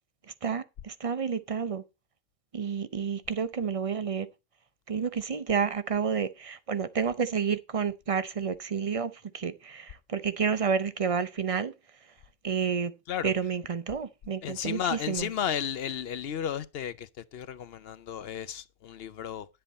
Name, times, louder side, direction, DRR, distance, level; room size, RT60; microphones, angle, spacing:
voice 1, 0.4-1.8 2.5-4.3 4.9-11.7 12.4-12.9 13.2-15.3, right 6 dB, 40° right, 0.6 m, -30 dB
voice 2, 14.4-19.5, left 9 dB, 60° left, 0.8 m, -33 dB
10.0 x 7.7 x 4.2 m
omnidirectional pair, 1.2 m